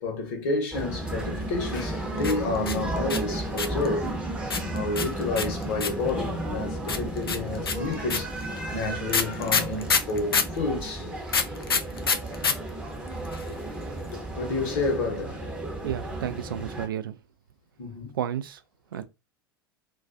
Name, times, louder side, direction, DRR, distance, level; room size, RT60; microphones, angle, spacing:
voice 1, 0.0-4.2 4.7-8.3 8.7-11.1 14.1-15.5 17.8-18.1, left 2 dB, 50° left, 0.9 m, -30 dB
sound 1, 0.7-16.9, right 1 dB, 5° right, 0.7 m, -33 dB
sound 2, 2.2-3.9 4.5-6.1 6.9-10.6 11.3-12.5 12.8-12.9 13.1-13.6, left 5 dB, 80° left, 0.4 m, -25 dB
voice 2, 15.7-17.2 18.1-18.6 18.9-19.0, right 10 dB, 70° right, 0.4 m, -32 dB
2.3 x 2.3 x 2.5 m
figure-of-eight pair, 85°, 12 cm